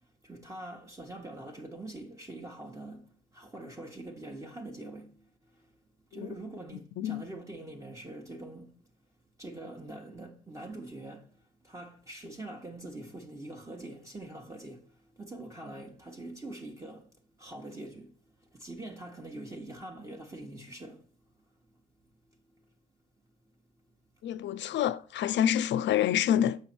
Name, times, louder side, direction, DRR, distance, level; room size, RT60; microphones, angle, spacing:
voice 1, 0.2-5.7 6.1-8.7 9.4-17.1 17.4-21.0 24.7-24.8, right 2 dB, 15° right, 1.0 m, -44 dB
voice 2, 24.2-26.6, left 10 dB, 65° left, 0.5 m, -27 dB
7.0 x 5.5 x 4.4 m
cardioid pair, 90°, 20 cm